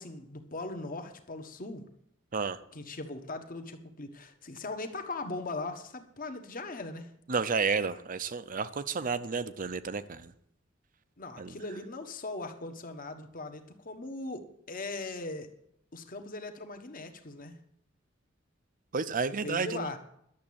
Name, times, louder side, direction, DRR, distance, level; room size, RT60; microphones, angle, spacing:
voice 1, 0.0-1.9 2.7-7.1 11.2-15.5 15.9-17.6 19.3-20.0, left 2 dB, 45° left, 7 dB, 1.3 m, -39 dB
voice 2, 7.3-10.3 11.4-11.5 18.9-19.9, right 5 dB, 45° right, 13 dB, 0.6 m, -31 dB
11.5 x 7.4 x 8.6 m, 0.73 s
head